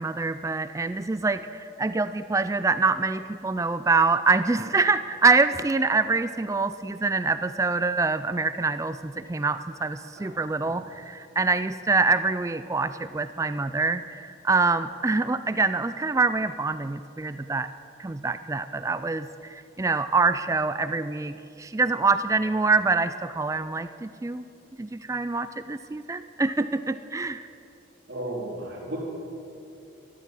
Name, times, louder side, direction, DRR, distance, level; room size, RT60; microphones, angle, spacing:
voice 1, 0.0-17.7 18.0-24.4 24.8-27.5, right 3 dB, 15° right, 12 dB, 0.3 m, -25 dB
voice 2, 28.1-29.0, right 1 dB, 65° right, -5 dB, 3.2 m, -34 dB
13.5 x 12.0 x 7.4 m, 2.7 s
head